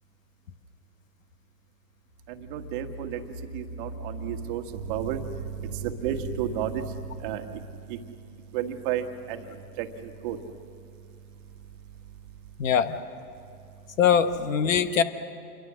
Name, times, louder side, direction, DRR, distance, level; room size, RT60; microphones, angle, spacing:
sound 1, 2.1-8.7, right 1 dB, 80° left, 5.1 m, -42 dB
voice 1, 2.3-3.2 3.5-7.5 7.9-8.0 8.5-10.4, right 9 dB, 35° right, 6 dB, 1.6 m, -32 dB
voice 2, 12.6-13.0 14.0-15.0, left 7 dB, 55° left, 11 dB, 1.3 m, -22 dB
28.0 x 22.5 x 6.3 m, 2.4 s
hypercardioid pair, 140°, 47 cm